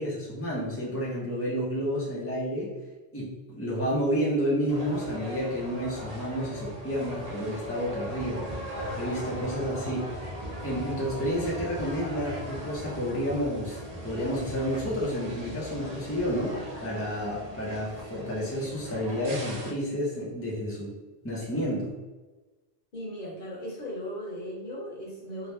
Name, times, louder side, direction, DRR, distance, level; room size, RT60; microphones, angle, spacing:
voice 1, 0.0-2.7 3.1-8.5 8.9-10.3 10.6-16.5 16.8-20.9 21.2-21.9, equal, 15° left, -6 dB, 0.5 m, -30 dB
sound 1, 4.7-19.7, equal, 50° right, 0.5 m, -39 dB
voice 2, 22.9-25.5, equal, 55° left, -5 dB, 1.1 m, -37 dB
2.9 x 2.1 x 3.3 m, 1.2 s
omnidirectional pair, 1.1 m